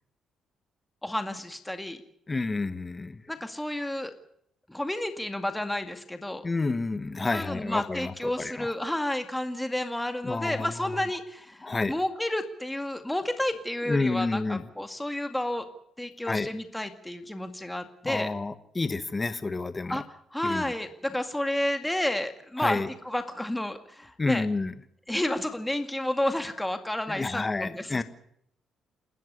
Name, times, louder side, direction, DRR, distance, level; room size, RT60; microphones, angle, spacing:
voice 1, 1.0-2.0 3.3-4.1 4.7-6.4 7.3-15.6 16.0-18.3 19.9-20.0 20.3-24.5 25.1-28.0, left 1 dB, 5° left, 7 dB, 2.1 m, -31 dB
voice 2, 2.3-3.2 6.4-8.7 10.2-11.0 11.6-11.9 13.8-14.6 16.2-16.5 18.0-20.0 20.4-20.7 22.6-22.9 24.2-24.7 27.1-28.0, left 3 dB, 25° left, 12 dB, 1.3 m, -29 dB
28.5 x 13.0 x 8.2 m, 0.72 s
cardioid pair, 90°, 0 cm